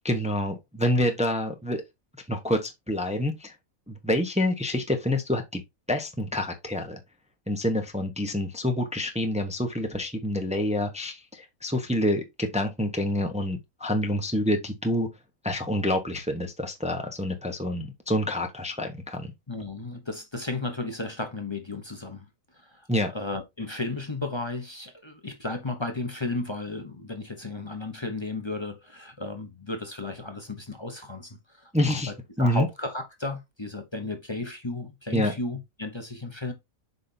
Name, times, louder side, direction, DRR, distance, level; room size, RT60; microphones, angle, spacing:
voice 1, 0.0-1.8 2.3-3.5 3.9-5.6 5.9-7.0 7.5-15.1 15.4-19.3 22.9-23.1 31.7-32.1 32.4-32.7 35.1-35.3, left 1 dB, 5° right, 0.9 m, -27 dB
voice 2, 19.5-22.3 22.5-22.9 23.1-36.5, left 2 dB, 20° left, 0.9 m, -34 dB
8.0 x 5.2 x 2.8 m
omnidirectional pair, 1.5 m